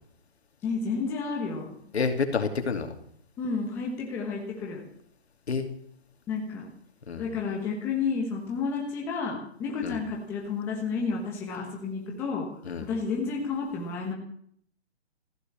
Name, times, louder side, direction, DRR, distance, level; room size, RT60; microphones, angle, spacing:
voice 1, 0.6-1.7 3.4-4.8 6.3-6.7 7.1-12.5 12.8-14.1, left 5 dB, 5° left, -1 dB, 1.2 m, -31 dB
voice 2, 1.9-2.9 5.5-5.7 7.1-7.2 9.8-10.0 12.6-12.9, left 5 dB, 70° left, 6 dB, 2.7 m, -28 dB
15.0 x 10.5 x 7.3 m, 0.63 s
hypercardioid pair, 175°, 33 cm